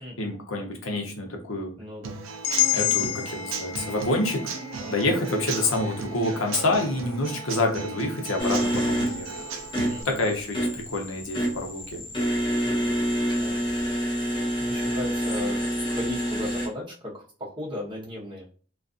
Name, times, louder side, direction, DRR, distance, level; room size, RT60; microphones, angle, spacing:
voice 1, 0.0-1.7 2.7-4.6 4.9-9.3 10.0-12.0, left 2 dB, 85° left, 2 dB, 0.7 m, -27 dB
voice 2, 1.8-2.2 4.8-5.1 9.9-10.2 12.6-12.9 13.4-13.6 14.6-18.5, left 1 dB, 25° right, -4 dB, 0.7 m, -37 dB
Human voice / Acoustic guitar / Drum, 2.0-10.0, right 4 dB, 80° right, 0.4 m, -35 dB
sound 1, 2.4-6.5, left 14 dB, 60° left, 0.4 m, -29 dB
sound 2, 8.4-16.7, equal, 20° left, 0.7 m, -27 dB
2.4 x 2.3 x 2.5 m, 0.40 s
head